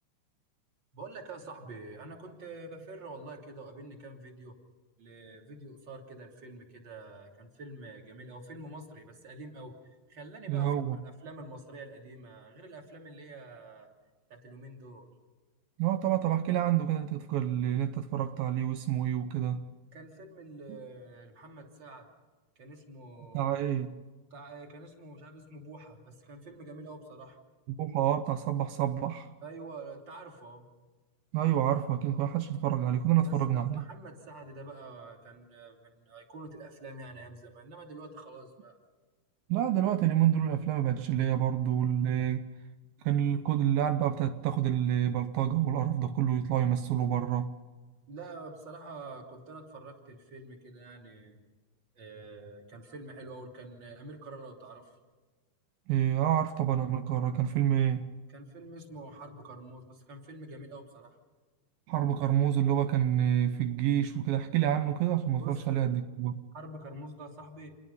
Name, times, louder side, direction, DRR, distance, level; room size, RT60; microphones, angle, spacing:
voice 1, 0.9-4.6 5.0-9.7 10.1-13.9 14.3-15.1 19.9-22.1 22.5-23.6 24.3-27.4 29.4-30.7 33.2-38.8 48.1-51.4 51.9-54.9 58.3-61.2 65.4-65.9 66.5-67.7, right 2 dB, 30° right, 3.4 m, -47 dB
voice 2, 10.5-11.0 15.8-19.7 20.7-20.8 23.3-24.0 27.8-29.3 31.3-33.8 39.5-42.5 43.0-47.5 55.9-58.1 61.9-66.4, right 11 dB, 80° right, 2.6 m, -28 dB
28.5 x 22.0 x 5.5 m
omnidirectional pair, 4.3 m